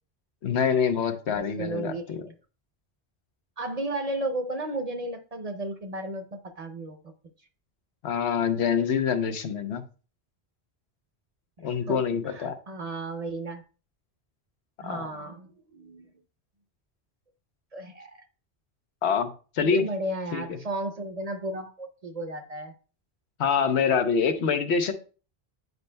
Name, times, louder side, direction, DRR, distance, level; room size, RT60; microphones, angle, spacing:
voice 1, 0.4-2.2 8.0-9.8 11.6-12.5 14.8-15.1 19.0-19.8 20.3-20.6 23.4-24.9, left 6 dB, 90° left, 1.1 m, -25 dB
voice 2, 1.3-2.1 3.6-7.0 11.6-13.6 14.8-16.1 17.7-18.2 19.6-22.7, right 1 dB, 40° right, 0.7 m, -34 dB
9.4 x 5.2 x 2.2 m
omnidirectional pair, 1.1 m